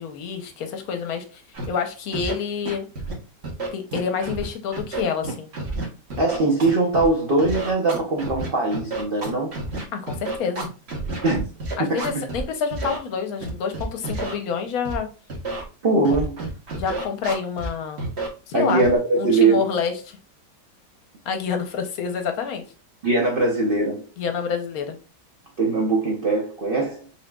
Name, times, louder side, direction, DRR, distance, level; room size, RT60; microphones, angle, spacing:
voice 1, 0.0-1.4 1.7-2.9 3.7-5.5 9.9-10.7 11.8-15.1 16.1-16.2 16.7-18.0 18.5-18.8 19.2-20.2 21.3-22.6 24.2-25.0, left 6 dB, 65° left, 1.0 m, -27 dB
Scratching (performance technique), 1.5-1.7 2.1-2.3 2.7-3.1 3.4-4.4 4.7-7.1 7.4-12.4 12.7-13.0 13.4-14.3 14.9-15.0 15.3-15.6 16.0-17.7 18.0-18.3 18.8-19.0, right 2 dB, 45° right, 1.0 m, -30 dB
voice 2, 6.2-9.6 11.2-11.5 11.8-12.2 15.8-16.4 18.5-19.6 23.0-24.1 25.6-27.1, right 3 dB, 80° right, 0.5 m, -21 dB
5.5 x 2.8 x 2.2 m
omnidirectional pair, 1.9 m